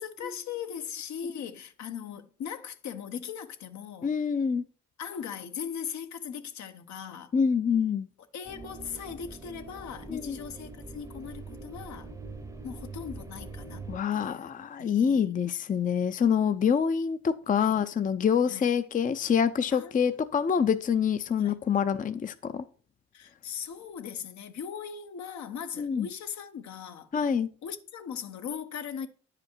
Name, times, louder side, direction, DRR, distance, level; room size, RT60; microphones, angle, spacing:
voice 1, 0.0-4.1 5.0-7.3 8.3-12.1 12.6-14.5 14.8-15.3 17.6-17.8 18.5-18.7 19.7-19.9 21.4-21.6 23.1-27.1 27.6-29.1, left 7 dB, 70° left, 1.0 m, -39 dB
voice 2, 4.0-4.6 7.3-8.1 10.1-10.4 13.9-22.6 25.8-26.1 27.1-27.5, left 7 dB, 25° left, 0.5 m, -26 dB
sound 1, 8.4-14.0, right 3 dB, 10° right, 0.7 m, -43 dB
9.5 x 5.0 x 4.5 m
cardioid pair, 90°, 30 cm